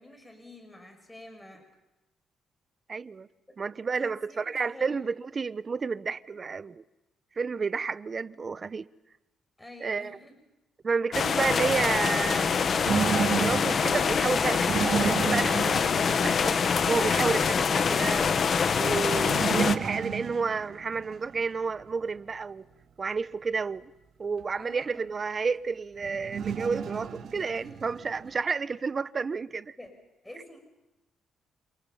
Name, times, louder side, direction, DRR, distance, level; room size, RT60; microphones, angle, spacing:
voice 1, 0.0-1.6 3.5-3.6 4.0-5.0 9.6-10.4 24.6-25.1 27.6-28.0 29.8-29.9 30.2-30.6, left 1 dB, 10° left, 6.8 m, -48 dB
voice 2, 2.9-3.3 3.6-6.8 7.4-8.9 9.8-10.1 10.8-12.5 13.3-18.4 18.8-22.6 23.0-23.9 24.2-29.8, right 5 dB, 35° right, 0.9 m, -31 dB
sound 1, 11.1-19.8, left 6 dB, 50° left, 1.4 m, -25 dB
sound 2, 12.4-17.2 19.3-21.4 21.8-21.9 24.4-24.5 26.0-28.4, right 7 dB, 65° right, 3.9 m, -32 dB
29.5 x 28.5 x 5.6 m
cardioid pair, 90°, 0 cm